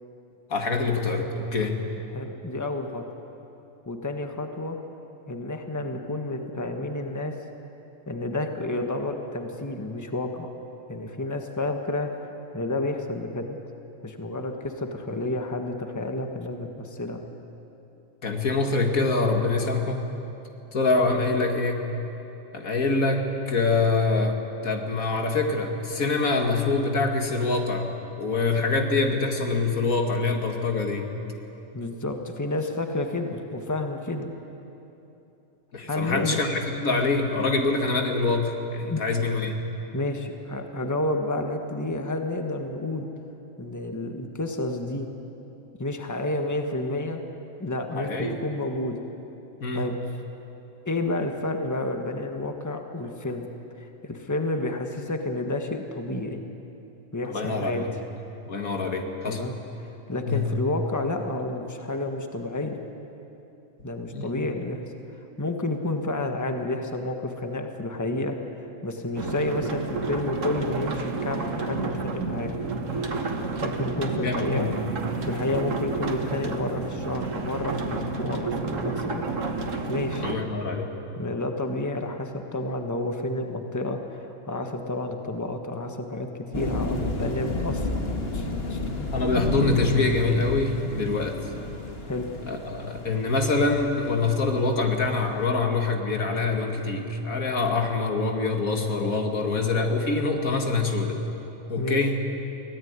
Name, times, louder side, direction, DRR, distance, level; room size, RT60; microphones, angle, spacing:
voice 1, 0.5-1.9 18.2-20.1 20.7-21.8 22.5-24.4 24.6-31.1 35.7-39.6 48.0-48.4 49.6-49.9 57.3-57.9 58.5-59.4 60.3-60.5 64.1-64.3 74.2-74.7 80.2-80.9 89.1-91.4 92.5-101.2 101.7-102.2, left 3 dB, 85° left, 3 dB, 2.5 m, -25 dB
voice 2, 2.1-3.0 3.8-4.8 5.3-7.3 8.1-10.5 10.9-12.1 12.5-13.6 14.0-17.2 31.7-34.3 35.9-36.4 38.9-39.0 39.9-43.1 43.6-45.1 45.8-47.2 47.6-49.0 49.7-50.0 50.8-53.5 54.0-56.4 57.1-57.9 59.3-59.5 59.8-62.8 63.8-64.8 65.4-68.4 68.8-72.5 73.6-74.7 75.3-79.3 79.9-80.3 81.2-87.9 88.3-88.8 92.1-92.3 101.8-102.0, left 2 dB, 15° left, 4 dB, 1.5 m, -30 dB
sound 1, 69.2-80.4, right 4 dB, 65° right, 1.9 m, -30 dB
sound 2, 86.5-95.4, left 2 dB, 45° left, 2.2 m, -31 dB
24.5 x 17.0 x 9.6 m, 3.0 s
omnidirectional pair, 1.4 m